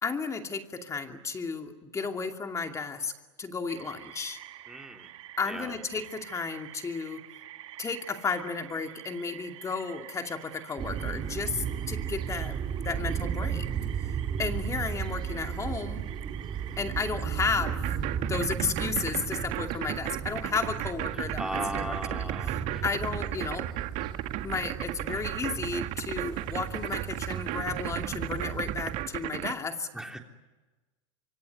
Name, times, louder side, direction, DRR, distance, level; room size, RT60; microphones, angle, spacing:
voice 1, 0.0-3.1 3.4-4.4 5.4-7.2 7.8-13.7 14.4-16.0 16.8-17.8 18.3-23.7 24.4-29.9, left 4 dB, 20° left, 5 dB, 2.6 m, -33 dB
sound 1, 3.7-17.3, right 14 dB, 80° right, 2.1 m, -48 dB
voice 2, 4.7-5.1 5.5-5.7 21.4-22.8 29.9-30.2, right 1 dB, 5° right, 3 dB, 3.3 m, -37 dB
sound 2, 10.8-29.0, right 8 dB, 30° right, 2.7 m, -35 dB
sound 3, 17.7-29.5, right 16 dB, 50° right, 1.9 m, -34 dB
25.5 x 24.5 x 9.6 m, 1.2 s
supercardioid pair, 120°, 16 cm